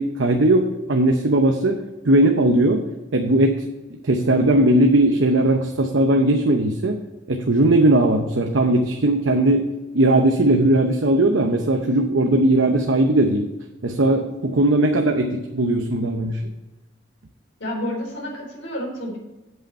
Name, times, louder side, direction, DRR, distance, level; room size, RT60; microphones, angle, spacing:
voice 1, 0.0-2.8 3.1-3.7 4.0-7.0 7.3-9.7 9.9-13.4 13.8-16.4, right 1 dB, 85° right, 4 dB, 0.8 m, -18 dB
voice 2, 17.6-19.2, equal, 85° left, -1 dB, 3.5 m, -29 dB
8.1 x 7.9 x 4.3 m, 1.0 s
head